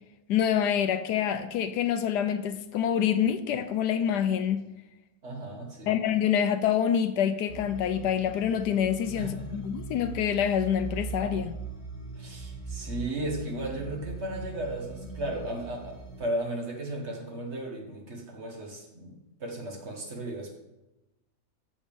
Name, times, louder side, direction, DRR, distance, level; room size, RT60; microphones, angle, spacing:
voice 1, 0.3-4.6 5.9-11.5, left 9 dB, 75° left, 10 dB, 1.1 m, -26 dB
voice 2, 5.2-5.9 9.1-9.6 12.1-20.6, right 1 dB, 40° right, 1 dB, 1.6 m, -35 dB
sound 1, 7.5-16.2, right 4 dB, 40° left, 1.8 m, -40 dB
13.5 x 5.1 x 3.6 m, 0.96 s
omnidirectional pair, 1.9 m